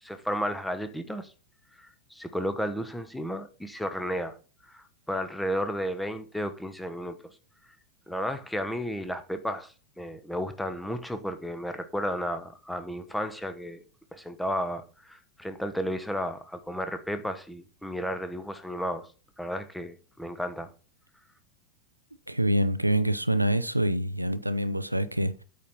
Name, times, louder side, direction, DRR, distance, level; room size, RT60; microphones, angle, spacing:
voice 1, 0.0-1.3 1.8-4.4 4.7-7.3 8.1-13.8 14.1-19.1 19.4-20.7, equal, 5° left, 0.9 m, -33 dB
voice 2, 22.3-25.4, right 1 dB, 85° right, 0.6 m, -26 dB
8.5 x 4.3 x 5.4 m
figure-of-eight pair, 90°, 0 cm